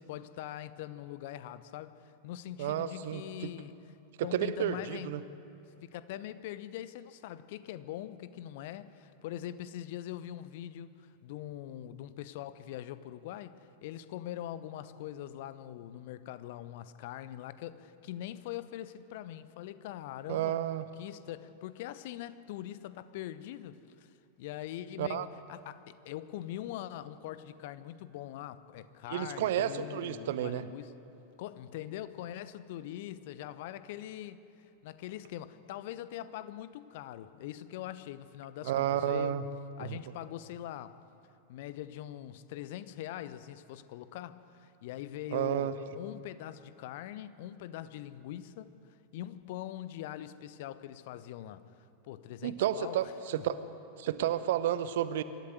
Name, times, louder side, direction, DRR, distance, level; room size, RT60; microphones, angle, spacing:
voice 1, 0.0-1.9 2.2-3.8 4.2-5.2 5.8-20.6 21.0-24.1 24.4-25.2 25.5-30.9 31.4-34.4 34.8-39.4 39.8-40.9 41.5-48.7 49.1-51.7 52.0-53.1 53.4-53.5, left 12 dB, 50° left, 14 dB, 0.9 m, -42 dB
voice 2, 2.6-3.5 4.2-5.2 20.3-20.8 25.0-25.3 29.1-30.6 38.6-39.4 39.9-40.0 45.3-45.7 52.4-53.6 54.0-55.2, right 11 dB, 55° right, 14 dB, 0.9 m, -31 dB
25.5 x 13.5 x 8.0 m, 2.7 s
figure-of-eight pair, 90°, 0 cm